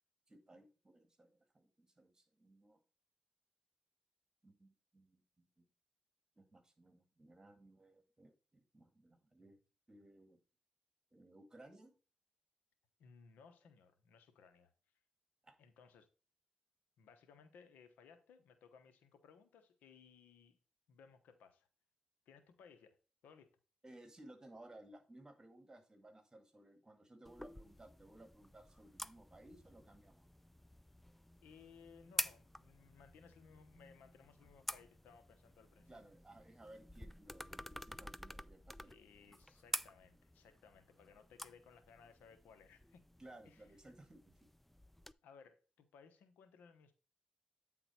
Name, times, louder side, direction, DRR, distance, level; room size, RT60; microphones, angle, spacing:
voice 1, 0.3-2.8 4.4-5.6 6.4-9.6 9.9-10.4 11.1-11.9 15.4-15.5 23.8-30.3 35.9-38.9 39.2-39.3 43.2-44.5, right 1 dB, 20° right, 2.0 m, -60 dB
voice 2, 13.0-14.7 15.6-16.1 17.0-20.6 20.9-21.7 22.3-23.0 23.2-23.5 31.4-36.0 38.8-43.0 43.4-43.7 45.2-46.9, left 6 dB, 90° left, 1.1 m, -62 dB
sound 1, 27.2-45.1, left 1 dB, 5° left, 0.3 m, -49 dB
9.1 x 3.9 x 4.3 m
cardioid pair, 70°, 3 cm